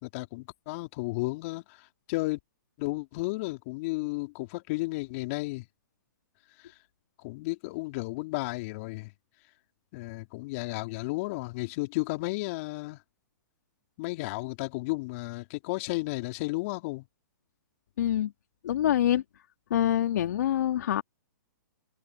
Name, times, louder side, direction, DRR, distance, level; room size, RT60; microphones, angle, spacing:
voice 1, 0.0-2.4 2.8-5.7 6.6-6.7 7.2-9.1 9.9-13.0 14.0-17.1, left 23 dB, 45° left, 3.5 m, -33 dB
voice 2, 18.0-18.3 18.6-19.2 19.7-21.0, left 11 dB, 60° left, 3.0 m, -25 dB
hypercardioid pair, 120°, 11 cm